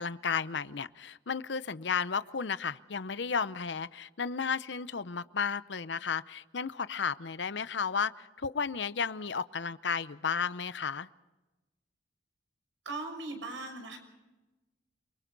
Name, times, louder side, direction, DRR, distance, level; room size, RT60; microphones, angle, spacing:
voice 1, 0.0-11.1, left 6 dB, 65° left, 15 dB, 0.7 m, -33 dB
voice 2, 12.8-14.0, right 2 dB, 85° right, 3 dB, 6.3 m, -39 dB
29.5 x 23.5 x 4.0 m, 1.1 s
head